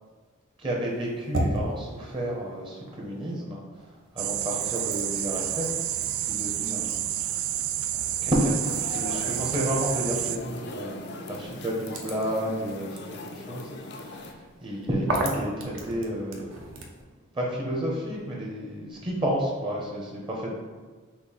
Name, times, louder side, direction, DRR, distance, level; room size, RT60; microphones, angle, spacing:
voice 1, 0.6-3.6 4.1-5.7 6.0-7.4 7.9-13.7 14.0-14.3 14.6-16.7 17.3-20.5, equal, 25° right, -3 dB, 0.7 m, -31 dB
sound 1, 0.8-3.4 3.8-17.0, right 1 dB, 65° right, 0.7 m, -38 dB
sound 2, 4.2-10.4, right 12 dB, 85° right, 0.3 m, -29 dB
sound 3, 8.6-14.3, left 2 dB, 50° left, 0.4 m, -40 dB
6.0 x 2.0 x 4.0 m, 1.5 s
head